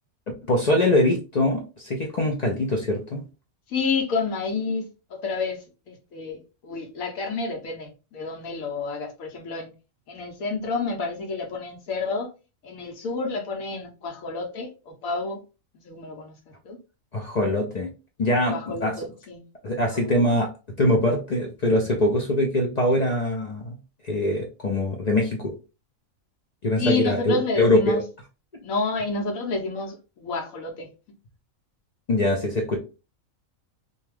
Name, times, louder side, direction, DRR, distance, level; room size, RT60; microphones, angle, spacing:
voice 1, 0.5-3.2 17.1-17.9 18.2-18.9 19.6-20.5 20.8-23.8 24.0-25.5 26.6-28.0 32.1-32.8, left 1 dB, 55° left, 0.4 m, -23 dB
voice 2, 3.7-9.7 10.1-12.3 12.6-15.4 15.7-16.4 16.6-16.8 18.5-19.5 19.9-20.1 26.8-28.0 28.6-30.9, left 3 dB, 80° left, 1.2 m, -30 dB
2.7 x 2.3 x 3.2 m
omnidirectional pair, 1.4 m